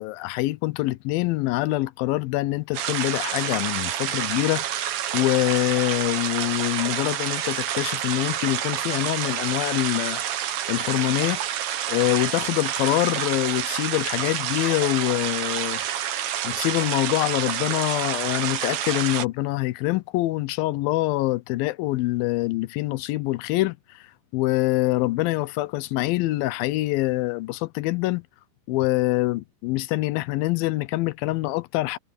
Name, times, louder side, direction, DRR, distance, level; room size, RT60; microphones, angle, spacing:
voice 1, 0.0-10.2 10.7-11.4 11.9-15.8 16.4-24.1 24.3-28.3 28.7-32.0, left 18 dB, 85° left, 2.5 m, -25 dB
sound 1, 2.7-19.2, right 11 dB, 80° right, 3.2 m, -28 dB
omnidirectional pair, 4.1 m